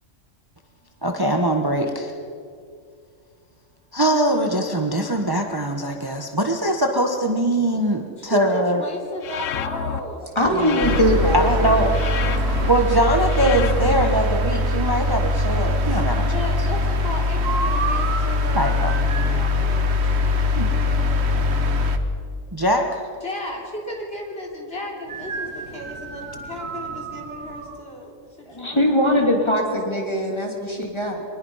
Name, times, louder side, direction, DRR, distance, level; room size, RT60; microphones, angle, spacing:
voice 1, 1.0-2.1 3.9-8.8 10.5-10.9 11.3-11.9 12.7-16.3 18.5-18.9 20.6-20.7 22.5-23.0, right 1 dB, 20° right, 4 dB, 1.2 m, -22 dB
voice 2, 8.2-10.3 16.2-21.7 23.2-29.2, left 1 dB, 50° left, -1 dB, 3.7 m, -35 dB
sound 1, 9.2-10.0 10.6-11.4 11.9-12.7 13.3-14.0, left 9 dB, 85° left, 1.2 m, -29 dB
voice 3, 10.3-11.9 28.5-31.2, equal, 20° left, 1 dB, 3.1 m, -21 dB
sound 2, 10.8-22.0, left 2 dB, 60° right, 1.4 m, -22 dB
sound 3, 17.4-19.4 25.1-27.8, right 4 dB, 85° right, 1.9 m, -31 dB
24.0 x 20.5 x 5.6 m, 2.3 s
omnidirectional pair, 1.3 m